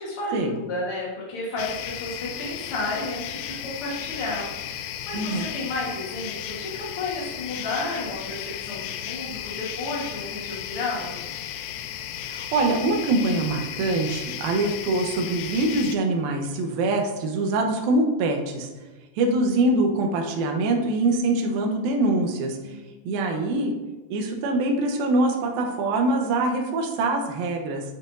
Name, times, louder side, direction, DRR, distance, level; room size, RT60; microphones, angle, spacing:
voice 1, 0.0-11.2 22.6-22.8 23.3-23.5, left 2 dB, 65° left, -5 dB, 1.3 m, -32 dB
sound 1, 1.6-16.0, left 10 dB, 85° left, 2.7 m, -35 dB
voice 2, 5.1-5.5 12.2-18.7 19.2-22.6 23.1-23.7 24.1-27.8, right 2 dB, 75° right, 2 dB, 2.5 m, -24 dB
10.5 x 6.0 x 2.6 m, 1.2 s
omnidirectional pair, 4.8 m